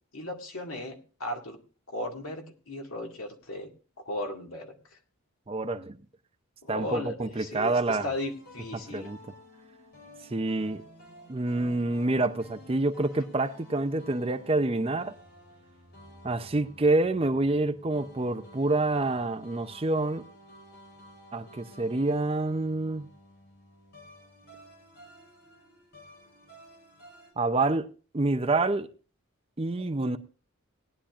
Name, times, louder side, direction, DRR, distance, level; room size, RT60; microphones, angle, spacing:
voice 1, 0.1-1.6 1.9-3.7 4.0-4.7 6.6-9.1, left 1 dB, 75° left, 2.0 m, -36 dB
voice 2, 5.5-6.0 6.7-8.1 8.7-9.2 10.3-10.8 11.3-15.2 16.2-20.2 21.3-23.1 27.4-27.9 28.1-28.9 29.6-30.2, right 2 dB, 25° right, 0.5 m, -27 dB
sound 1, 7.7-27.3, equal, 45° left, 4.5 m, -52 dB
18.5 x 10.0 x 2.5 m
head